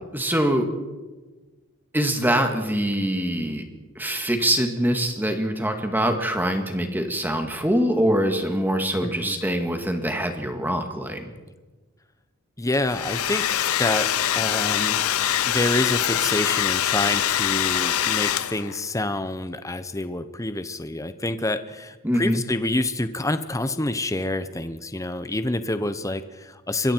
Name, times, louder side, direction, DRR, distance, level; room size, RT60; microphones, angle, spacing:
voice 1, 0.1-0.7 1.9-3.6 4.0-11.2 22.0-22.4, right 1 dB, 10° right, 5 dB, 2.0 m, -24 dB
voice 2, 9.0-9.3 12.6-15.2 15.5-26.9, left 2 dB, 15° left, 11 dB, 0.8 m, -27 dB
Domestic sounds home sounds, 12.7-18.8, left 11 dB, 75° left, 0.7 m, -24 dB
26.0 x 22.0 x 4.6 m, 1.3 s
head